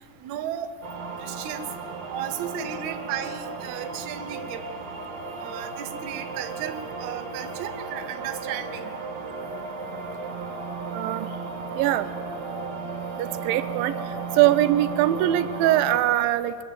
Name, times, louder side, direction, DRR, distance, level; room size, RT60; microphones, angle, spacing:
voice 1, 0.2-0.7 1.2-1.7 2.1-4.7 5.4-9.0, right 10 dB, 75° right, 7 dB, 1.8 m, -34 dB
sound 1, 0.8-16.0, right 4 dB, 55° right, 2.8 m, -35 dB
voice 2, 10.9-11.3 11.8-12.1 13.2-14.0 14.3-16.6, right 13 dB, 90° right, 13 dB, 2.4 m, -22 dB
22.0 x 8.7 x 7.3 m, 2.1 s
omnidirectional pair, 4.0 m